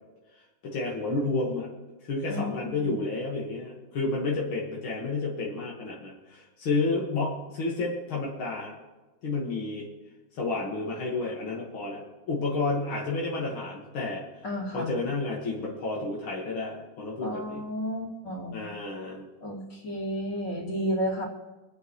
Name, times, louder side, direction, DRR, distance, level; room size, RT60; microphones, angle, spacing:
voice 1, 0.6-1.7 2.0-8.7 9.2-9.8 10.3-14.2 14.7-17.6 18.5-19.3, left 3 dB, 90° left, -3 dB, 2.7 m, -31 dB
voice 2, 2.3-3.0 14.4-14.9 17.2-18.6 19.4-21.2, equal, 60° left, -4 dB, 3.6 m, -32 dB
26.5 x 8.9 x 3.2 m, 1.2 s
omnidirectional pair, 2.2 m